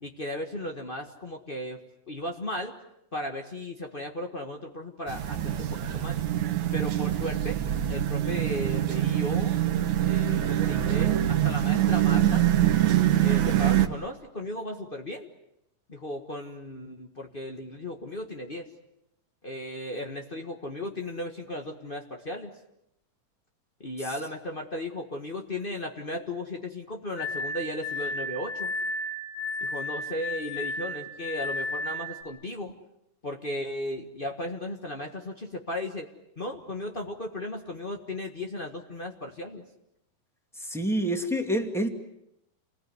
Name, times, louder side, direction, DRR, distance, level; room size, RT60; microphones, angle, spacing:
voice 1, 0.0-1.8 2.1-2.7 3.1-6.2 6.7-7.6 7.9-9.6 10.0-12.5 13.2-15.3 15.9-18.6 19.4-22.5 23.8-28.7 29.6-32.7 33.2-36.1 36.4-39.6, left 1 dB, 60° left, 2 dB, 0.5 m, -36 dB
sound 1, 5.1-13.9, right 12 dB, 65° right, 2.6 m, -24 dB
Glass, 27.2-32.2, left 2 dB, 90° left, 4.6 m, -33 dB
voice 2, 40.6-41.9, equal, ahead, 4 dB, 1.6 m, -27 dB
29.5 x 20.5 x 9.6 m, 0.84 s
omnidirectional pair, 3.9 m